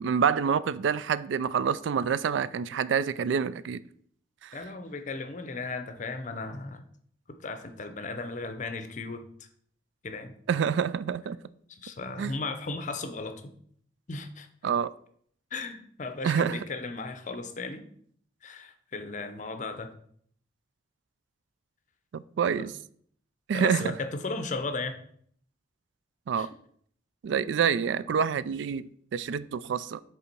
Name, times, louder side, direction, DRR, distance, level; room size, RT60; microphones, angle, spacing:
voice 1, 0.0-3.8 4.4-4.6 10.5-11.4 12.2-12.3 14.6-14.9 16.2-16.6 22.1-22.7 23.5-23.9 26.3-26.5 27.2-30.0, right 7 dB, 70° right, 0.3 m, -27 dB
voice 2, 4.5-6.8 7.3-9.5 10.0-10.3 11.7-13.5 14.1-14.5 15.5-17.8 18.4-19.9 22.6-22.7 23.5-25.0 26.4-26.5, left 3 dB, 40° left, 0.6 m, -36 dB
6.7 x 3.7 x 4.5 m
head